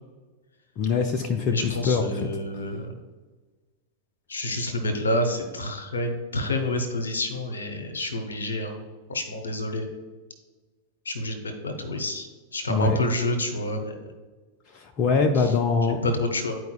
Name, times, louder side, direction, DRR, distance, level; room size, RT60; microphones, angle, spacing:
voice 1, 0.8-2.3 12.7-13.0 14.7-16.0, left 5 dB, 35° left, 4 dB, 0.5 m, -23 dB
voice 2, 1.5-3.0 4.3-8.8 9.1-9.9 11.0-14.1 15.3-15.5 15.9-16.6, left 1 dB, 70° left, 6 dB, 0.9 m, -28 dB
11.0 x 4.5 x 2.3 m, 1.3 s
figure-of-eight pair, 90°, 0 cm